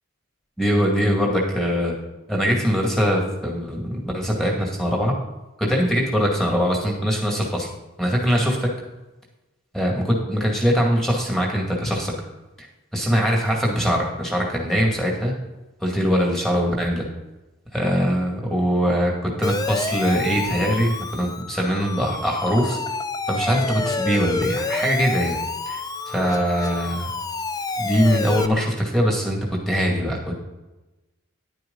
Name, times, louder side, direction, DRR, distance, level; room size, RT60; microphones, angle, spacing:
voice 1, 0.6-1.9 2.3-5.1 5.6-7.7 8.0-8.7 9.7-12.1 12.9-15.3 15.8-17.1 17.7-22.8 23.3-25.4 25.7-27.1 27.8-29.4 29.7-30.2, equal, ahead, -2 dB, 2.2 m, -22 dB
Siren, 19.4-28.5, left 3 dB, 15° left, 0.4 m, -28 dB
10.5 x 9.5 x 4.0 m, 1.1 s
head